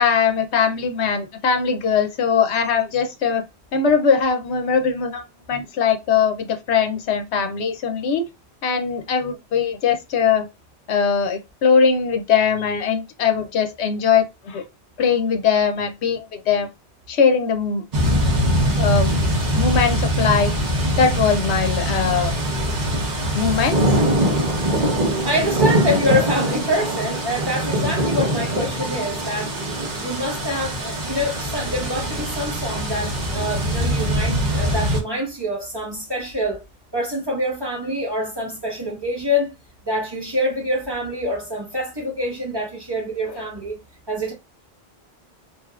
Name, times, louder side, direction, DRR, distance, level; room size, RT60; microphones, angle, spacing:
voice 1, 0.0-3.4 3.7-8.2 8.6-10.5 10.9-14.6 15.0-16.7 17.1-17.8 18.8-19.1 19.6-20.6 21.0-22.3 23.4-23.8 43.3-43.4, left 6 dB, 80° left, 0.9 m, -20 dB
sound 1, 17.9-35.0, equal, 45° right, 1.0 m, -22 dB
voice 2, 25.2-29.5 29.9-36.6 36.9-39.5 39.9-43.8 44.1-44.3, left 1 dB, 25° right, 1.2 m, -25 dB
3.4 x 2.8 x 2.3 m
omnidirectional pair, 1.1 m